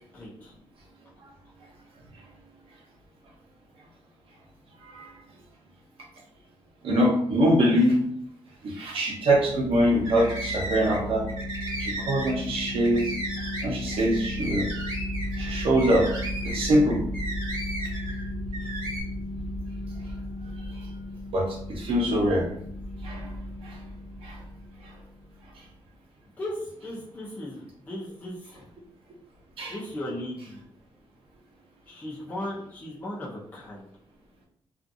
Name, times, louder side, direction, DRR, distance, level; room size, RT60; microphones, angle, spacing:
voice 1, 0.1-0.5 26.4-28.7 29.7-30.6 31.9-33.9, left 1 dB, 15° left, -7 dB, 0.5 m, -37 dB
voice 2, 6.8-7.9 8.6-11.2 11.8-13.1 13.6-14.7 15.4-16.1 16.4-17.0 21.3-22.5 23.0-23.3 23.6-23.7 24.2-24.4 29.6-29.8, equal, 75° right, -1 dB, 0.8 m, -23 dB
sound 1, 9.3-25.5, left 1 dB, 35° left, 1.2 m, -35 dB
sound 2, 10.0-11.0 11.3-18.2 18.5-19.0, right 1 dB, 50° right, 1.4 m, -35 dB
2.5 x 2.4 x 2.6 m, 0.68 s
wide cardioid pair, 180°, 9 cm